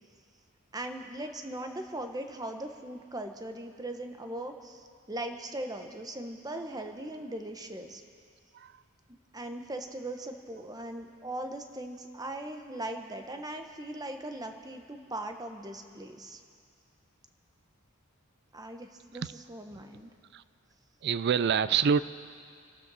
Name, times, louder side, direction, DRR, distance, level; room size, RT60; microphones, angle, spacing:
voice 1, 0.7-4.8 5.1-8.0 9.1-16.4 18.5-20.1, right 1 dB, 20° right, 5 dB, 1.0 m, -39 dB
voice 2, 21.0-22.0, right 7 dB, 50° right, 15 dB, 0.4 m, -27 dB
27.5 x 12.5 x 4.1 m, 2.2 s
head